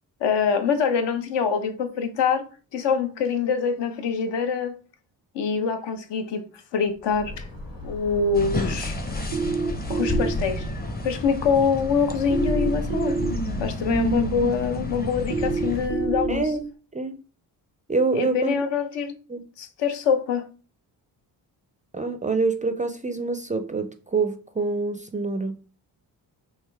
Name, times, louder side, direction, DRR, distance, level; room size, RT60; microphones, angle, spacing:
voice 1, 0.2-2.5 2.7-4.7 5.3-6.5 6.7-7.4 7.8-9.0 9.9-10.7 11.0-13.2 13.6-16.5 18.1-19.1 19.6-20.5, left 6 dB, 70° left, 0.7 m, -24 dB
sound 1, 7.0-16.6, left 1 dB, 50° left, 1.8 m, -33 dB
sound 2, 8.3-15.9, left 1 dB, 20° left, 0.7 m, -32 dB
sound 3, 9.3-10.3 12.3-13.3 15.3-16.3, right 5 dB, 80° right, 0.5 m, -26 dB
voice 2, 16.3-17.2 17.9-18.6 19.3-19.4 21.9-25.6, right 3 dB, 20° right, 0.3 m, -26 dB
3.5 x 2.7 x 3.3 m
supercardioid pair, 55°, 45 cm